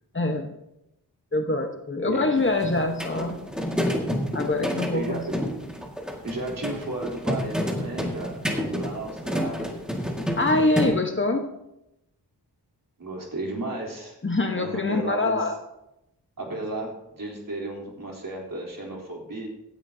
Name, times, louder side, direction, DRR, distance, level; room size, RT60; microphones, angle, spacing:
voice 1, 0.1-0.5 1.3-3.4 4.3-5.2 10.4-11.6 14.2-15.5, left 2 dB, 30° left, 4 dB, 1.2 m, -24 dB
sound 1, 2.4-10.9, equal, ahead, 2.0 m, -29 dB
voice 2, 4.9-5.3 6.2-9.7 13.0-14.2 14.5-15.5 16.4-19.5, right 2 dB, 55° right, -2 dB, 3.6 m, -34 dB
17.0 x 10.5 x 2.8 m, 0.87 s
wide cardioid pair, 100°, 40 cm